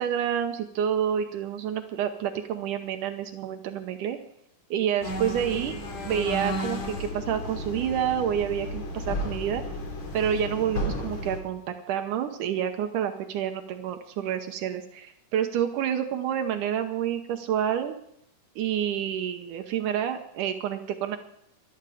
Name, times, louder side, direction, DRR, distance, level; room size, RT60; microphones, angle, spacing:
voice 1, 0.0-4.2 4.7-5.8 6.1-9.6 10.1-17.9 18.6-21.2, right 9 dB, 75° right, 7 dB, 2.4 m, -28 dB
sound 1, 5.0-11.4, equal, 60° left, 3.8 m, -33 dB
18.5 x 12.5 x 4.9 m, 0.73 s
omnidirectional pair, 3.8 m